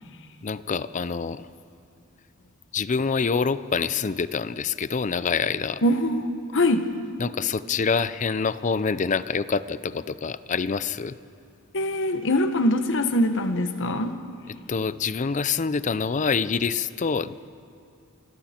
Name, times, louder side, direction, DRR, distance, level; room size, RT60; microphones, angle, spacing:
voice 1, 0.4-1.5 2.7-5.8 7.2-11.1 14.7-17.5, left 5 dB, 35° left, 15 dB, 0.5 m, -26 dB
voice 2, 5.8-6.9 11.7-14.1, left 1 dB, 60° left, 8 dB, 1.2 m, -23 dB
27.5 x 25.0 x 4.4 m, 2.5 s
head